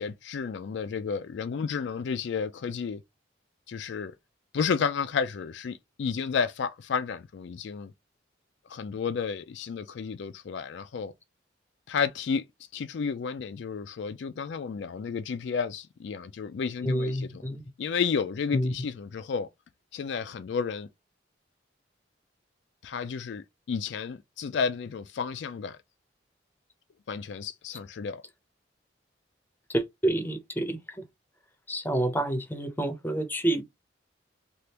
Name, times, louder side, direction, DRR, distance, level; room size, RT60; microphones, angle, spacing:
voice 1, 0.0-3.0 3.7-4.1 4.5-7.9 8.7-11.1 11.9-12.5 12.7-17.3 17.8-19.5 19.9-20.9 22.8-25.8 27.1-28.2, left 6 dB, 65° left, 0.4 m, -31 dB
voice 2, 16.8-17.6 18.5-18.7 29.7-31.0 31.7-33.6, right 1 dB, 10° left, 0.6 m, -28 dB
3.4 x 2.4 x 2.8 m
head